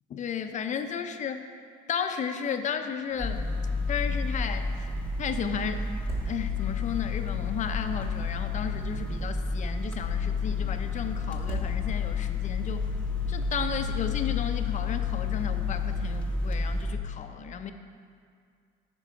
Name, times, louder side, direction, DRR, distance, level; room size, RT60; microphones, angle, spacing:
voice 1, 0.1-1.5 1.9-3.5 3.9-4.7 5.2-5.9 6.3-12.9 13.3-17.7, left 7 dB, 45° left, 8 dB, 0.6 m, -33 dB
sound 1, 3.1-3.6 3.9-4.0 5.8-6.9 8.6-9.5 11.3-12.3, right 1 dB, 60° right, 1.7 m, -39 dB
sound 2, 3.2-16.9, left 4 dB, 5° left, 0.8 m, -30 dB
9.1 x 5.3 x 4.7 m, 2.2 s
cardioid pair, 110°, 17 cm